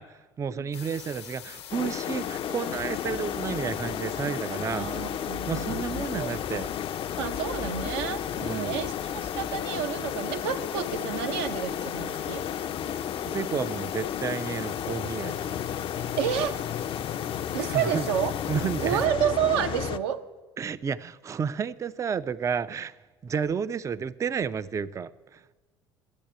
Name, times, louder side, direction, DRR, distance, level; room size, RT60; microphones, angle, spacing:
voice 1, 0.0-4.9 5.5-6.7 8.4-8.8 13.3-15.6 17.7-18.0 18.5-19.0 20.6-25.4, right 6 dB, 20° right, 0.4 m, -31 dB
sound 1, 0.7-19.1, left 10 dB, 80° left, 1.0 m, -44 dB
sound 2, 1.7-20.0, left 9 dB, 40° left, 0.5 m, -33 dB
voice 2, 4.7-6.3 7.2-12.5 16.2-16.6 17.5-18.3 18.8-20.2, right 10 dB, 70° right, 0.7 m, -30 dB
11.5 x 8.5 x 9.1 m
hypercardioid pair, 65°, 14 cm